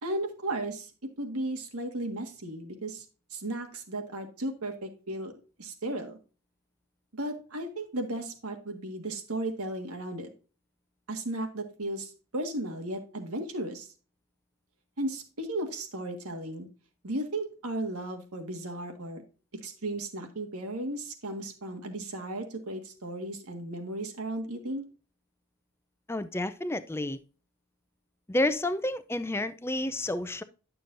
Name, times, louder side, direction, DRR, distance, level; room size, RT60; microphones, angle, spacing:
voice 1, 0.0-0.9 1.2-3.0 3.3-5.3 5.6-6.2 7.1-10.3 11.1-13.9 15.0-16.7 17.0-19.2 19.6-24.8, right 1 dB, 85° right, 1.6 m, -35 dB
voice 2, 26.1-27.2 28.3-30.4, left 1 dB, 10° left, 0.4 m, -30 dB
11.0 x 6.8 x 2.6 m
head